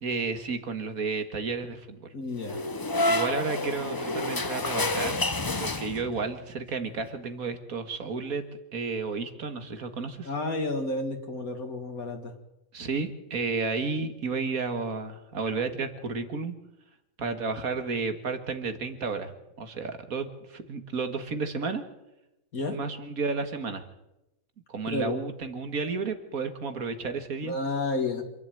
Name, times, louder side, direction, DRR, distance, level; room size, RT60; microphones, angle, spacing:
voice 1, 0.0-2.0 3.1-5.3 5.6-8.5 8.7-10.3 12.7-16.6 17.2-21.8 22.7-23.8 24.7-27.6, right 4 dB, 80° right, 8 dB, 2.2 m, -32 dB
voice 2, 2.1-2.6 10.2-12.3 22.5-22.8 24.9-25.2 27.4-28.2, left 2 dB, 80° left, 3 dB, 2.5 m, -31 dB
sound 1, 2.4-6.3, left 2 dB, 20° left, 0.6 m, -29 dB
26.5 x 11.0 x 9.1 m, 0.92 s
omnidirectional pair, 1.5 m